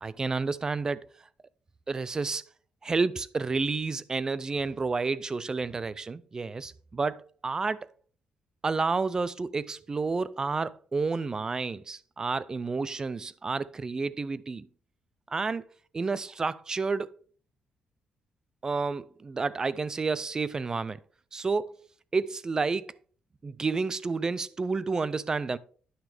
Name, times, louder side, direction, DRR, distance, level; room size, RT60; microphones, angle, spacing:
voice 1, 0.0-1.0 1.9-2.4 2.8-7.9 8.6-14.7 15.3-15.7 15.9-17.1 18.6-21.0 21.3-21.7 22.1-22.9 23.4-25.6, right 4 dB, 25° right, 0.3 m, -30 dB
9.6 x 6.0 x 3.4 m
cardioid pair, 145°, 3 cm